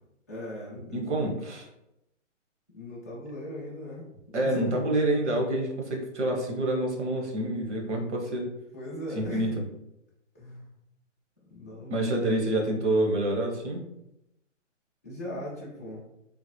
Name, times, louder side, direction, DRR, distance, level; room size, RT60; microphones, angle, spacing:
voice 1, 0.3-1.4 2.7-5.2 8.7-9.6 10.3-10.7 11.5-12.2 15.0-16.0, left 1 dB, 15° left, -8 dB, 0.4 m, -39 dB
voice 2, 0.9-1.6 4.3-8.5 9.1-9.5 11.9-13.8, right 1 dB, 65° right, 1 dB, 1.1 m, -27 dB
3.7 x 2.0 x 3.1 m, 0.85 s
hypercardioid pair, 155°, 38 cm